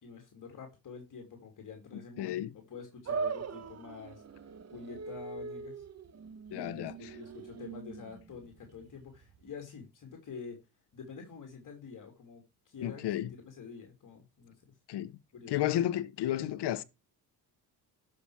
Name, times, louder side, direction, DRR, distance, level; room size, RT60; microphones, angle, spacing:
voice 1, 0.0-4.2 4.7-5.9 6.5-10.6 10.9-14.7 15.3-15.6, left 5 dB, 50° left, 3.0 m, -47 dB
voice 2, 2.2-2.5 6.5-6.9 12.8-13.3 14.9-15.1 15.5-16.8, left 12 dB, 80° left, 1.0 m, -32 dB
sound 1, 3.1-9.5, right 5 dB, 40° right, 1.1 m, -41 dB
12.0 x 6.0 x 5.0 m
cardioid pair, 110°, 40 cm